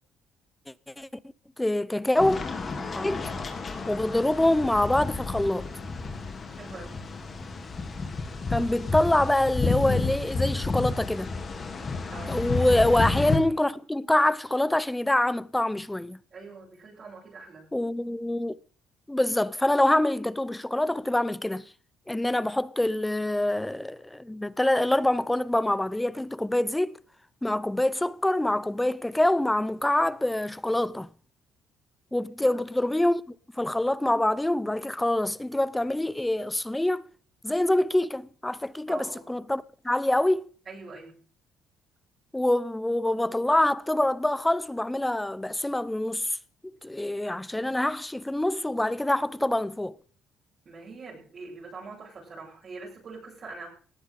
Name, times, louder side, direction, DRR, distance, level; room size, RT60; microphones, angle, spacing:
voice 1, 1.6-2.5 2.9-3.2 3.9-5.7 8.5-11.3 12.3-16.2 17.7-18.6 19.1-21.7 22.1-27.0 27.4-31.1 32.1-37.1 37.4-40.5 42.3-46.4 46.8-49.9, left 1 dB, 10° left, 0.7 m, -25 dB
sound 1, 2.2-13.4, left 3 dB, 35° left, 3.1 m, -31 dB
voice 2, 6.6-7.0 12.1-12.4 16.3-17.7 32.5-32.6 38.9-39.3 40.7-41.2 50.6-53.7, right 4 dB, 45° right, 7.7 m, -43 dB
19.0 x 14.5 x 3.9 m
cardioid pair, 95°, 0 cm